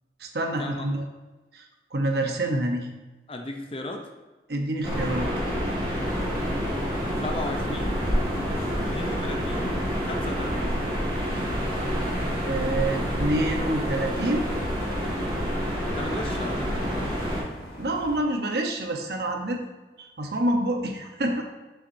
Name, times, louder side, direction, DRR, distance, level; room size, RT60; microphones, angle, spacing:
voice 1, 0.2-1.0 1.5-1.6 1.9-2.9 4.5-5.3 12.4-14.5 17.8-19.6 20.0-21.4, right 1 dB, 65° right, 3 dB, 0.8 m, -27 dB
voice 2, 3.3-4.1 7.2-8.1 8.9-9.7 10.0-10.8 15.9-17.3, left 1 dB, 30° left, 4 dB, 0.6 m, -35 dB
sound 1, 4.8-17.4, equal, 25° right, 1.6 m, -28 dB
sound 2, 6.0-18.2, left 1 dB, 60° left, 1.4 m, -44 dB
6.8 x 6.0 x 2.7 m, 1.2 s
head